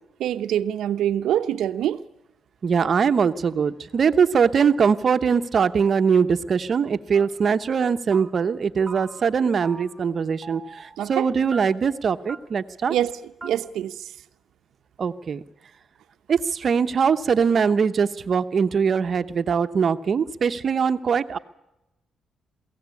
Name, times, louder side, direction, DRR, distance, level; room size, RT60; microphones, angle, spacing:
voice 1, 0.2-2.0 11.0-11.3 12.9-13.2 13.4-14.1, right 11 dB, 85° right, 11 dB, 0.9 m, -25 dB
voice 2, 2.6-13.0 15.0-15.4 16.3-21.4, right 6 dB, 50° right, 11 dB, 1.0 m, -22 dB
sound 1, 7.1-7.5 7.8-8.6 8.9-9.4 9.6-10.2 10.4-11.0 11.5-12.0 12.3-12.4 12.7-12.8 13.0-13.1 13.4-13.5, right 3 dB, 20° right, 1.9 m, -41 dB
23.0 x 16.5 x 9.8 m, 0.91 s
cardioid pair, 100°, 0 cm